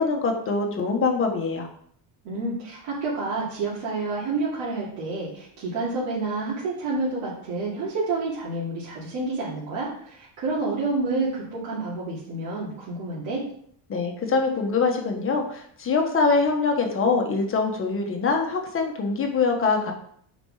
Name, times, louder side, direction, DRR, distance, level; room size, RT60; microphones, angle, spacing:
voice 1, 0.0-1.7 13.9-19.9, left 4 dB, 25° left, 3 dB, 1.2 m, -24 dB
voice 2, 2.2-13.4, right 3 dB, 60° right, -8 dB, 2.7 m, -29 dB
8.7 x 5.3 x 4.8 m, 0.64 s
cardioid pair, 180°, 47 cm